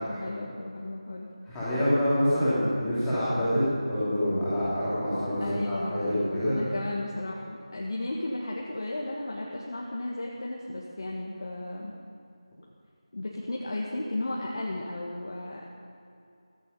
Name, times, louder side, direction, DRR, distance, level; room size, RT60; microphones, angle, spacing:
voice 1, 0.0-1.3 5.4-11.9 13.1-15.7, left 2 dB, 45° left, -3 dB, 1.7 m, -34 dB
voice 2, 1.5-6.5, equal, 5° left, -14 dB, 3.4 m, -26 dB
16.0 x 15.0 x 5.5 m, 2.6 s
figure-of-eight pair, 175°, 3 cm